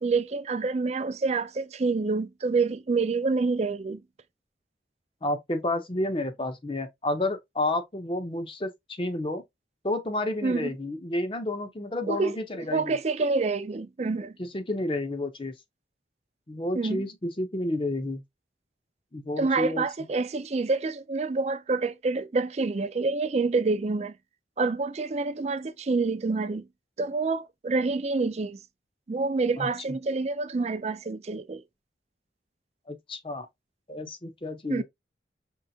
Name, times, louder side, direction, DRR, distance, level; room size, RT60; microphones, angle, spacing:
voice 1, 0.0-4.0 10.4-10.7 12.1-14.3 16.7-17.0 19.4-24.1 24.6-26.7 27.0-28.6 29.1-31.6 34.7-34.8, right 3 dB, 35° right, 0.4 m, -27 dB
voice 2, 5.2-9.4 9.8-13.0 14.4-15.5 16.5-18.2 19.1-19.8 29.6-29.7 32.9-33.5 33.9-34.8, left 1 dB, 30° left, 0.7 m, -30 dB
5.5 x 3.2 x 2.7 m
head